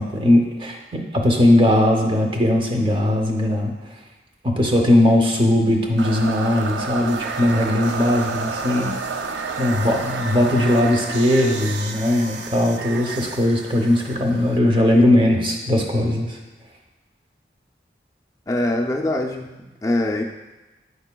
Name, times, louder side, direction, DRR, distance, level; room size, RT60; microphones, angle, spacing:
voice 1, 0.0-3.7 4.4-8.9 9.6-16.4, left 1 dB, 30° right, 2 dB, 0.7 m, -19 dB
sound 1, 6.0-15.0, right 4 dB, 80° right, 0.4 m, -30 dB
voice 2, 18.5-20.2, left 1 dB, 20° left, 0 dB, 0.4 m, -23 dB
8.0 x 5.2 x 2.2 m, 1.1 s
head